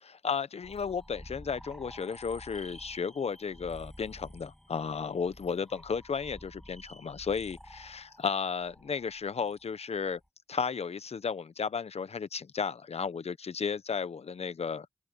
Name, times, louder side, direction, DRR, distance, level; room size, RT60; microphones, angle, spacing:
voice 1, 0.0-10.2 10.5-14.9, left 6 dB, 80° left, 0.8 m, -34 dB
sound 1, 0.6-10.3, equal, 5° left, 2.3 m, -51 dB
open air
cardioid pair, 50°, 10 cm